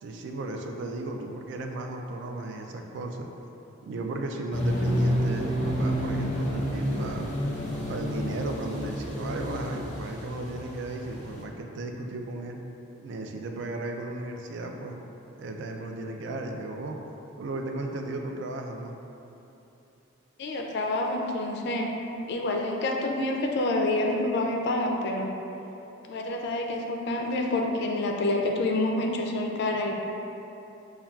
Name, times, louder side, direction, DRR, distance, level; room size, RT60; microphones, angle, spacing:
voice 1, 0.0-3.3 3.8-7.3 7.9-12.6 13.0-15.0 15.4-17.0 17.4-19.0, right 2 dB, 60° right, 3 dB, 0.3 m, -35 dB
sound 1, 4.5-11.4, equal, 35° left, 0.7 m, -29 dB
voice 2, 20.4-21.9 22.3-25.3 26.1-30.0, left 2 dB, 55° left, 1 dB, 0.3 m, -27 dB
5.6 x 2.3 x 2.3 m, 2.9 s
head